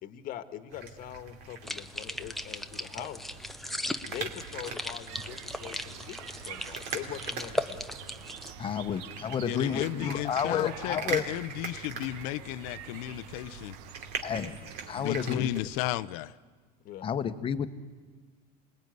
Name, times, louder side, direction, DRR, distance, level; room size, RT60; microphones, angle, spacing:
voice 1, 0.0-3.2 4.1-7.9 16.8-17.1, left 11 dB, 45° left, 10 dB, 1.4 m, -42 dB
sound 1, 0.7-15.8, right 5 dB, 55° right, 2.7 m, -42 dB
sound 2, 1.6-8.5, left 1 dB, ahead, 0.7 m, -38 dB
sound 3, 5.1-15.3, right 9 dB, 80° right, 1.2 m, -47 dB
voice 2, 8.6-11.2 14.2-14.6 14.9-15.5 17.0-17.7, left 8 dB, 25° left, 10 dB, 1.1 m, -30 dB
voice 3, 9.4-13.8 14.4-14.5 14.9-16.4, left 15 dB, 70° left, 13 dB, 0.7 m, -34 dB
27.0 x 20.0 x 9.4 m, 1.4 s
supercardioid pair, 140°, 20 cm